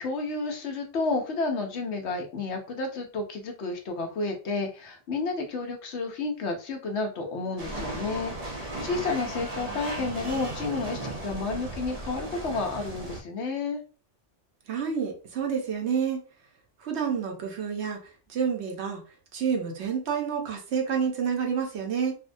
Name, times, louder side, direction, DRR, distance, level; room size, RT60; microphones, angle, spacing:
voice 1, 0.0-13.8, left 3 dB, 70° left, 4 dB, 0.9 m, -31 dB
sound 1, 7.6-13.2, right 2 dB, 40° right, 0.6 m, -36 dB
voice 2, 14.7-16.2 16.8-18.0 18.3-19.0 19.3-22.1, right 6 dB, 65° right, 2 dB, 1.0 m, -28 dB
3.4 x 2.1 x 2.5 m, 0.35 s
omnidirectional pair, 1.2 m